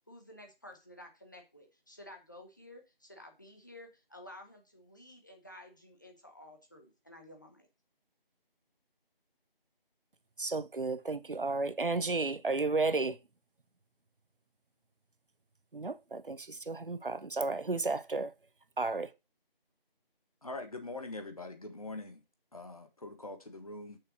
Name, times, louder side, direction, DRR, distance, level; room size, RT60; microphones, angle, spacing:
voice 1, 0.1-7.7, left 1 dB, 20° left, 1.0 m, -53 dB
voice 2, 10.4-13.2 15.7-18.3 18.8-19.1, right 3 dB, 65° right, 0.8 m, -33 dB
voice 3, 20.4-22.2 22.5-24.0, left 2 dB, 40° left, 1.4 m, -43 dB
6.6 x 6.4 x 6.0 m
figure-of-eight pair, 170°, 29 cm